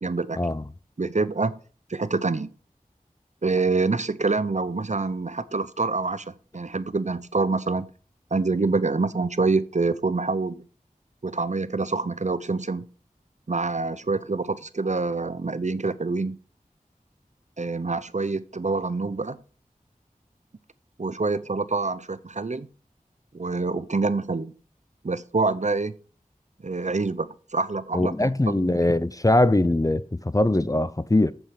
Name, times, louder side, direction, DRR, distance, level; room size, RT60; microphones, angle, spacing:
voice 1, 0.0-0.4 1.0-1.5 1.9-2.5 3.4-7.9 8.3-10.7 11.2-12.9 13.5-16.4 17.6-19.4 21.0-22.7 23.3-24.5 25.0-25.9 26.6-28.8, right 3 dB, 55° right, 0.6 m, -26 dB
voice 2, 27.9-31.3, left 1 dB, 25° left, 0.5 m, -22 dB
8.0 x 7.2 x 4.7 m
wide cardioid pair, 45°, 15 cm